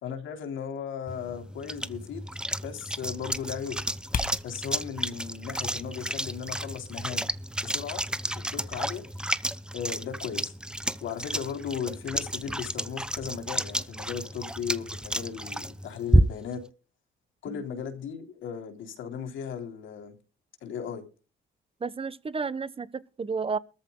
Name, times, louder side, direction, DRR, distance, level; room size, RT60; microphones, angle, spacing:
voice 1, 0.0-2.3 2.6-3.8 4.4-7.3 7.6-8.0 8.3-9.0 9.7-10.5 11.0-16.6 17.4-20.1 20.6-21.0, left 8 dB, 80° left, 3.3 m, -36 dB
sound 1, 1.1-16.6, right 1 dB, 5° right, 0.8 m, -31 dB
sound 2, 3.8-9.3, left 5 dB, 45° left, 1.9 m, -42 dB
voice 2, 21.8-23.6, right 5 dB, 30° right, 1.1 m, -32 dB
22.5 x 14.0 x 2.3 m
cardioid pair, 90°, 20 cm